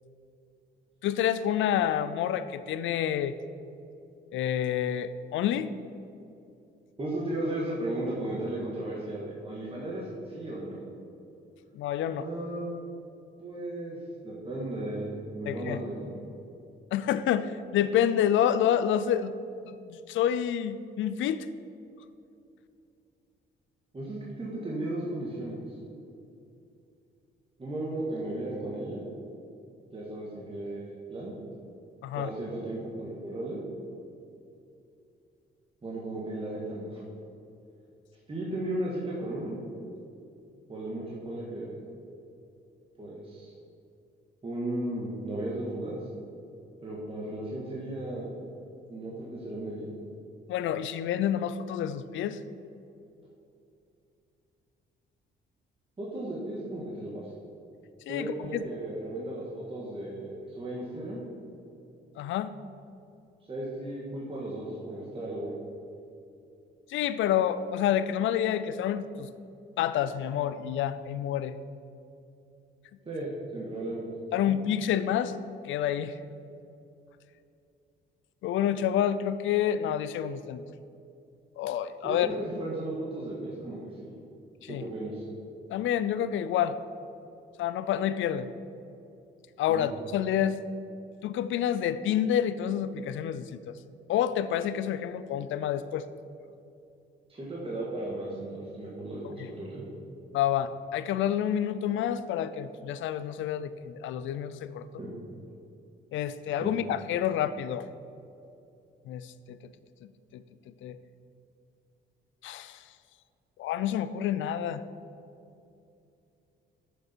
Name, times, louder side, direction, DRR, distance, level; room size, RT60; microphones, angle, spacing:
voice 1, 1.0-3.3 4.3-5.7 11.7-12.3 15.5-15.8 16.9-19.3 19.7-21.5 32.0-32.3 50.5-52.4 58.1-58.6 62.2-62.5 66.9-69.3 69.8-71.5 74.3-75.3 75.7-76.1 78.4-80.6 81.6-82.3 84.6-84.8 85.7-86.8 87.6-88.5 89.6-90.6 91.2-93.7 94.1-96.0 99.4-99.5 100.3-105.0 106.1-107.9 109.1-109.6 110.3-110.4 110.8-111.0 112.4-112.8 113.6-114.8, left 10 dB, 80° left, 14 dB, 0.5 m, -28 dB
voice 2, 7.0-10.8 12.1-12.7 13.4-16.1 23.9-25.8 27.6-29.1 29.9-31.4 32.1-33.6 35.8-37.0 38.3-39.6 40.7-41.7 43.0-43.5 44.4-46.0 46.8-48.5 48.9-49.9 53.2-53.3 56.0-57.3 58.1-61.2 63.5-65.5 73.1-74.1 74.5-74.6 82.0-84.1 84.7-85.3 89.7-89.9 97.3-99.9 105.0-105.1 106.6-106.7, right 1 dB, 25° right, -5 dB, 1.7 m, -35 dB
9.8 x 6.8 x 4.5 m, 2.7 s
cardioid pair, 90°, 20 cm